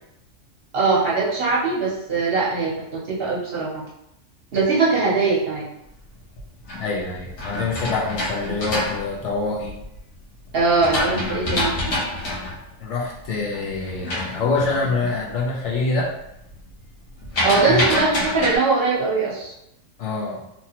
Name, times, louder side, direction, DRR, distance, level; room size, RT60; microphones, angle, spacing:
voice 1, 0.7-3.8 4.5-5.7 10.5-12.0 17.4-19.5, right 4 dB, 55° right, -4 dB, 0.8 m, -21 dB
sound 1, 6.2-10.0 10.5-15.3 15.6-16.1 16.3-18.6, left 1 dB, 85° left, 1.3 m, -27 dB
voice 2, 6.8-9.8 12.8-16.1 17.7-17.8 20.0-20.4, left 3 dB, 65° left, -3 dB, 1.0 m, -25 dB
3.0 x 2.7 x 2.8 m, 0.82 s
omnidirectional pair, 1.4 m